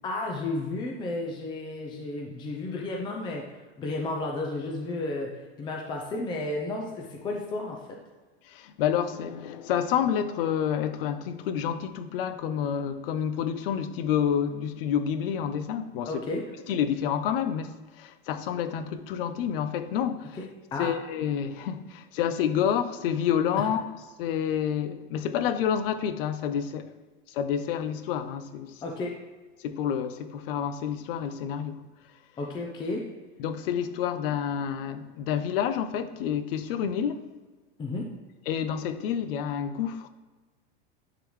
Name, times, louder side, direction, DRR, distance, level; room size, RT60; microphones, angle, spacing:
voice 1, 0.0-3.4 3.8-8.0 16.1-16.4 20.7-20.9 28.8-29.1 32.4-33.0 37.8-38.1, left 2 dB, 15° left, 0.6 m, -32 dB
voice 2, 8.4-16.1 16.7-20.4 20.8-23.9 24.2-26.9 27.3-28.8 29.6-31.8 33.4-37.2 38.5-40.1, left 8 dB, 70° left, 0.7 m, -29 dB
10.0 x 3.9 x 3.2 m
supercardioid pair, 155°, 30 cm